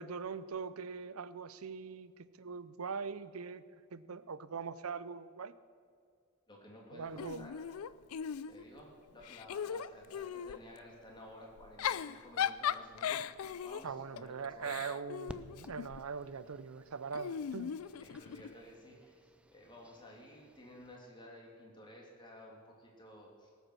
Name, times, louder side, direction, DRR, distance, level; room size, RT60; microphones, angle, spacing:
voice 1, 0.0-3.6 3.9-5.5 6.9-7.5 13.8-17.7, right 5 dB, 90° right, 16 dB, 0.6 m, -42 dB
voice 2, 6.5-7.5 8.5-14.8 15.6-15.7 18.0-23.5, left 1 dB, 20° left, -2 dB, 2.8 m, -54 dB
Giggle / Chuckle chortle, 7.2-8.8 9.2-10.6 11.6-16.1 17.1-18.5, left 8 dB, 80° left, 0.4 m, -38 dB
sound 1, 15.3-21.0, right 1 dB, 5° right, 0.5 m, -56 dB
18.5 x 8.1 x 6.2 m, 2.2 s
head